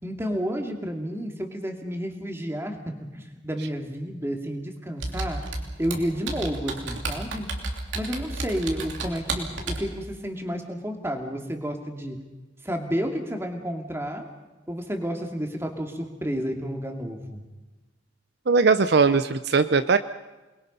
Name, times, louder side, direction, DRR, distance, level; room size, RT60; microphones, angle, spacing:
voice 1, 0.0-5.4 5.8-7.5 7.9-12.2 12.6-14.3 14.7-17.4, equal, 15° right, 3 dB, 2.5 m, -31 dB
Computer keyboard, 5.0-9.9, right 2 dB, 75° right, 3.2 m, -32 dB
voice 2, 18.5-20.0, right 4 dB, 60° right, 11 dB, 0.6 m, -19 dB
28.5 x 21.5 x 5.5 m, 1.1 s
head